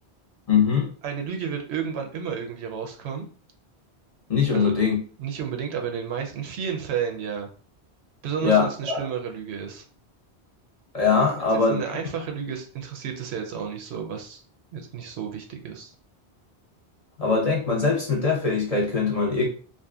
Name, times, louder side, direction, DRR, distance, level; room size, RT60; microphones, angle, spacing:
voice 1, 0.5-0.9 4.3-5.0 8.4-9.1 10.9-11.8 17.2-19.5, left 5 dB, 40° left, -2 dB, 0.7 m, -22 dB
voice 2, 1.0-3.2 4.5-4.7 5.2-7.5 8.2-9.8 11.4-14.4 14.7-15.9, right 7 dB, 75° right, 4 dB, 0.8 m, -31 dB
2.6 x 2.4 x 2.3 m, 0.39 s
omnidirectional pair, 1.1 m